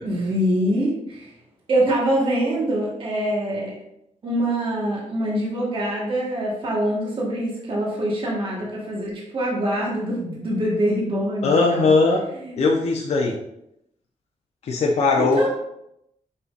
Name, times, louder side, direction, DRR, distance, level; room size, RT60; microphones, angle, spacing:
voice 1, 0.0-1.3 1.7-3.7 4.2-11.9 12.4-12.6 15.1-15.5, right 1 dB, 40° right, -3 dB, 1.4 m, -24 dB
voice 2, 11.4-12.2 12.6-13.3 14.7-15.5, left 3 dB, 55° left, -1 dB, 0.8 m, -19 dB
7.0 x 5.5 x 2.5 m, 0.80 s
wide cardioid pair, 170°, 13 cm